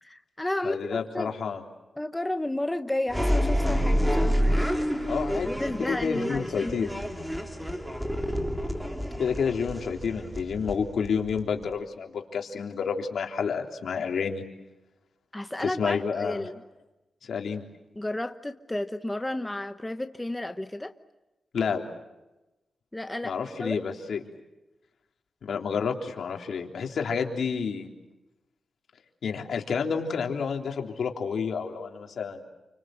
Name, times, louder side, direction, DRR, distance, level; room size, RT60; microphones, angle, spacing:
voice 1, 0.0-1.3 2.0-4.6 5.4-6.9 15.3-16.6 17.9-20.9 22.9-23.8, left 1 dB, 10° left, 8 dB, 1.0 m, -32 dB
voice 2, 0.6-1.6 5.0-6.9 9.2-14.4 15.6-16.4 17.2-17.6 21.5-21.8 23.2-24.2 25.4-27.9 29.2-32.4, left 6 dB, 80° left, 2 dB, 3.5 m, -29 dB
sound 1, 3.1-11.7, equal, 5° right, 3.0 m, -28 dB
29.5 x 25.0 x 7.8 m, 1.0 s
wide cardioid pair, 115°, 0 cm